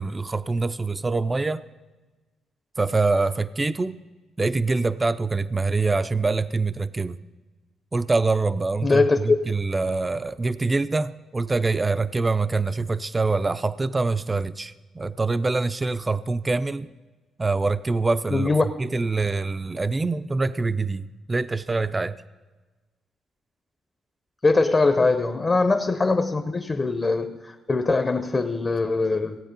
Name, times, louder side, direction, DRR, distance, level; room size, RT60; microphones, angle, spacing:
voice 1, 0.0-1.6 2.8-4.0 4.4-7.2 7.9-16.9 17.4-18.5 18.8-22.2, right 3 dB, 20° right, 14 dB, 0.4 m, -25 dB
voice 2, 8.8-9.4 18.3-18.6 24.4-29.4, left 3 dB, 30° left, 8 dB, 0.7 m, -22 dB
16.5 x 8.5 x 5.3 m, 1.2 s
cardioid pair, 90°, 0 cm